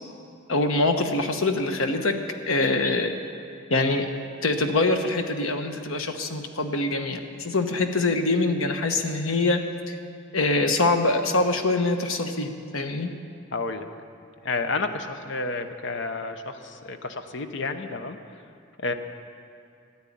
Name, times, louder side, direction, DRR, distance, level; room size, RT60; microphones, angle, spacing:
voice 1, 0.5-2.2 2.5-3.1 3.7-4.1 4.4-10.0 10.3-13.1, left 2 dB, 80° left, 6 dB, 1.1 m, -24 dB
voice 2, 13.5-13.9 14.4-18.2 18.8-18.9, left 3 dB, 60° left, 8 dB, 0.8 m, -30 dB
13.0 x 9.6 x 8.6 m, 2.5 s
head